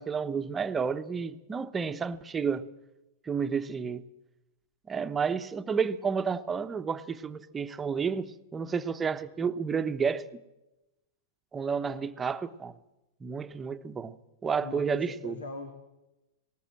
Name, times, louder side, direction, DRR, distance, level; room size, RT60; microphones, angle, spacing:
voice 1, 0.0-2.7 3.2-4.0 4.9-10.2 11.5-12.8 13.2-15.3, right 6 dB, 20° right, 1.0 m, -31 dB
voice 2, 14.6-15.7, left 3 dB, 75° left, 2.6 m, -40 dB
19.0 x 19.0 x 7.5 m
figure-of-eight pair, 100°, 0 cm